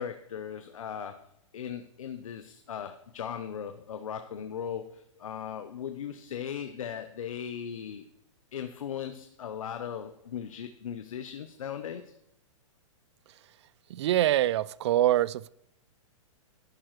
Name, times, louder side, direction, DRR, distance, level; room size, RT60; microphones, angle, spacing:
voice 1, 0.0-8.1 8.5-12.2, left 8 dB, 85° left, 0.8 m, -38 dB
voice 2, 13.9-15.5, right 13 dB, 55° right, 0.4 m, -24 dB
12.0 x 9.0 x 3.1 m
hypercardioid pair, 145°, 17 cm